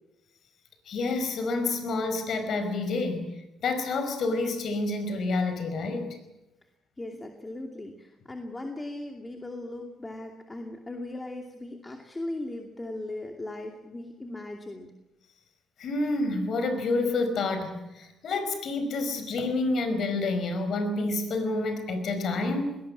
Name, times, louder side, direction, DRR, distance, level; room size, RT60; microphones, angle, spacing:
voice 1, 0.9-3.3 3.6-6.2 15.8-22.8, left 2 dB, 65° left, 8 dB, 5.1 m, -28 dB
voice 2, 7.0-14.9, left 2 dB, 20° left, 3 dB, 2.6 m, -38 dB
21.5 x 18.5 x 8.6 m, 0.96 s
cardioid pair, 90°, 0 cm